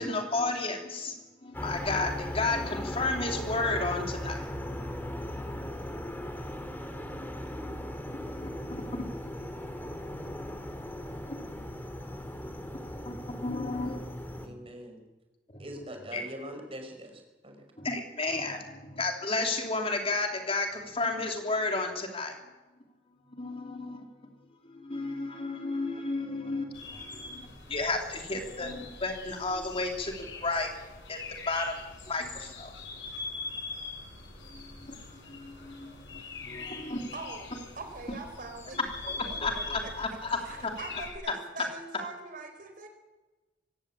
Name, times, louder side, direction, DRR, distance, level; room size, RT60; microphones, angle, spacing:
voice 1, 0.0-4.5 7.0-7.3 8.1-9.2 9.7-10.9 11.2-11.6 12.4-14.0 14.3-14.6 15.5-15.6 16.1-16.2 17.8-22.4 23.3-24.3 24.6-30.7 31.1-31.2 31.5-31.8 32.1-32.7 34.5-37.0 38.1-38.2 39.0-40.7, left 3 dB, 30° left, 3 dB, 3.5 m, -33 dB
sound 1, 1.5-14.5, left 1 dB, 10° left, 2.7 m, -38 dB
voice 2, 14.4-15.0 15.6-17.5, right 1 dB, 30° right, 4 dB, 5.6 m, -42 dB
sound 2, 26.7-41.1, left 3 dB, 80° left, 6.5 m, -43 dB
voice 3, 37.1-42.9, right 3 dB, 50° right, 6 dB, 4.3 m, -43 dB
23.0 x 17.5 x 8.7 m, 1.1 s
head